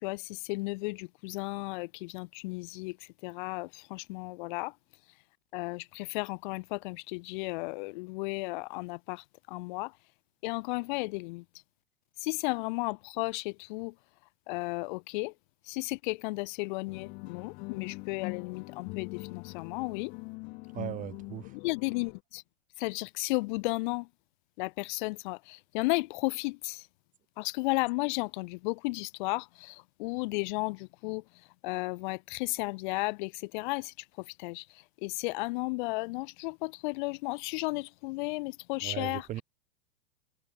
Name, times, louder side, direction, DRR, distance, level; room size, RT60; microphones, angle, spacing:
voice 1, 0.0-4.7 5.5-9.9 10.4-11.4 12.2-13.9 14.5-15.3 15.7-20.1 21.6-22.4 22.8-24.1 24.6-26.9 27.4-31.2 31.6-39.4, left 25 dB, 45° left, 1.3 m, -34 dB
sound 1, 16.9-22.2, left 28 dB, 25° left, 0.4 m, -43 dB
voice 2, 20.7-21.5 38.8-39.4, right 13 dB, 25° right, 0.7 m, -38 dB
figure-of-eight pair, 95°, 33 cm